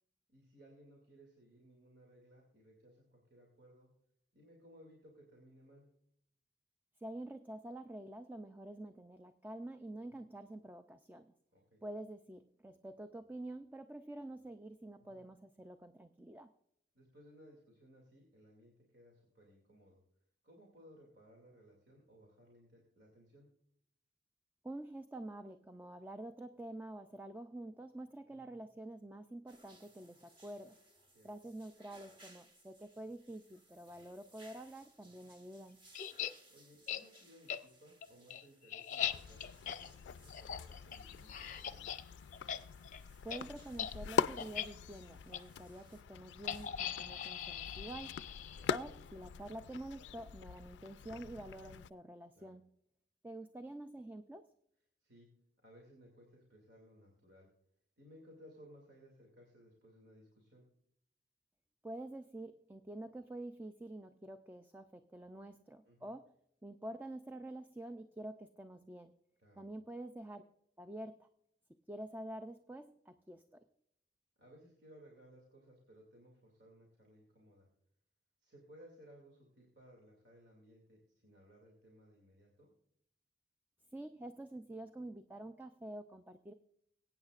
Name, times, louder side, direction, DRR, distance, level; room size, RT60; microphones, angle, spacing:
voice 1, 0.3-3.9 4.3-5.9 10.0-10.2 11.5-11.8 15.0-15.2 16.9-20.0 20.4-23.5 28.3-28.5 31.1-31.3 35.0-35.3 36.5-41.9 47.0-47.2 48.5-48.7 52.3-52.5 55.0-55.3 55.6-57.5 58.0-60.6 65.8-66.1 69.4-69.6 74.4-77.7 78.4-82.7, equal, 75° right, -2 dB, 2.4 m, -61 dB
voice 2, 7.0-11.3 11.8-16.5 24.6-30.8 31.2-35.8 43.2-48.2 48.7-52.7 53.2-54.5 61.8-66.3 66.6-69.1 69.6-70.4 70.8-71.3 71.9-73.6 83.9-86.5, right 1 dB, 10° right, 8 dB, 0.3 m, -48 dB
sound 1, 29.5-46.0, right 1 dB, 30° right, 1.4 m, -65 dB
sound 2, 35.9-36.3 36.9-37.0 37.5-37.6 38.0-42.0 42.3-42.6 42.8-43.0 43.3-43.4 43.7-43.9 44.4-44.7 45.3-45.4 46.5-48.8, left 9 dB, 45° left, 0.6 m, -40 dB
sound 3, 39.0-51.9, left 6 dB, 90° left, 0.3 m, -43 dB
22.5 x 8.8 x 2.4 m, 0.74 s
head